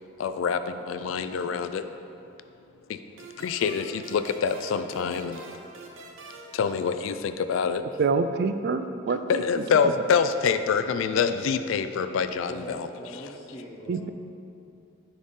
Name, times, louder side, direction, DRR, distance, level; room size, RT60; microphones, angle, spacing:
voice 1, 0.2-1.8 2.9-3.0 3.4-5.4 6.5-7.8 9.3-12.9, left 6 dB, 80° left, 10 dB, 0.3 m, -26 dB
sound 1, 3.2-7.5, right 3 dB, 80° right, 0.7 m, -46 dB
voice 2, 8.0-9.9 13.9-14.1, right 4 dB, 55° right, 9 dB, 0.3 m, -27 dB
voice 3, 12.5-14.1, left 1 dB, 25° left, -6 dB, 0.5 m, -41 dB
9.7 x 4.0 x 3.7 m, 2.7 s
head